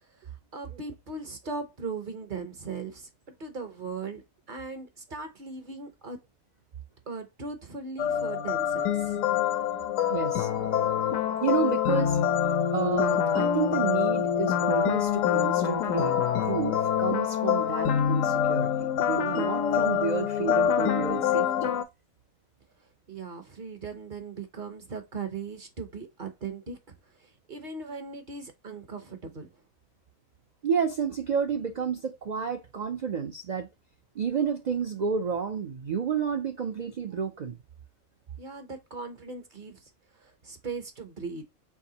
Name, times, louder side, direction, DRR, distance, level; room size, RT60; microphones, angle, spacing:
voice 1, 0.0-3.1 3.4-6.2 7.1-9.2 23.1-26.8 27.0-29.6 38.4-41.4, right 4 dB, 45° right, 0.8 m, -39 dB
sound 1, 8.0-21.8, left 9 dB, 75° left, 1.0 m, -26 dB
voice 2, 10.1-10.5 11.4-12.2 12.7-16.2 16.4-21.7 30.6-33.7 34.1-37.6, right 6 dB, 65° right, 0.4 m, -30 dB
4.8 x 3.5 x 2.7 m
omnidirectional pair, 1.4 m